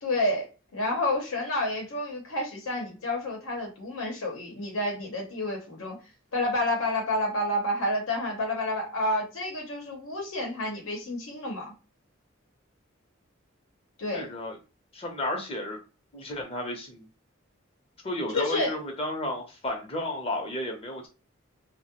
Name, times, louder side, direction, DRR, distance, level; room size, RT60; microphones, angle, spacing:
voice 1, 0.0-6.0 6.3-11.7 14.0-14.3 18.3-18.7, left 1 dB, 85° left, 0 dB, 0.8 m, -29 dB
voice 2, 14.1-14.6 14.9-15.8 16.1-17.1 18.0-21.1, left 1 dB, 30° left, 1 dB, 0.6 m, -33 dB
2.2 x 2.0 x 2.8 m, 0.32 s
head